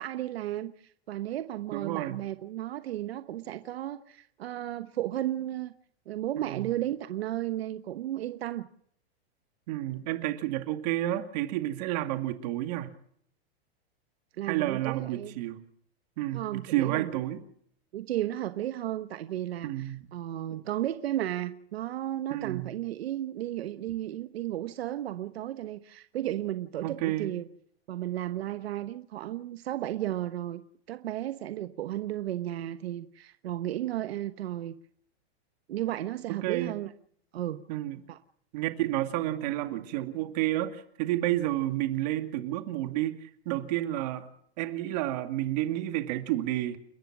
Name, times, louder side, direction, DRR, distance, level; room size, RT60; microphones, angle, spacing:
voice 1, 0.0-5.7 6.1-8.6 14.4-15.3 16.3-17.1 17.9-27.5 27.9-30.6 30.9-34.7 35.7-36.9 37.3-37.6 38.1-38.2, right 13 dB, 70° right, 1.1 m, -34 dB
voice 2, 1.7-2.2 6.4-6.7 9.7-13.0 14.5-15.6 16.2-17.4 19.6-20.0 22.3-22.7 26.8-27.3 36.4-36.7 37.7-38.0 38.5-44.3 44.6-46.8, right 14 dB, 40° right, 2.3 m, -30 dB
30.0 x 14.5 x 6.1 m
supercardioid pair, 170°, 32 cm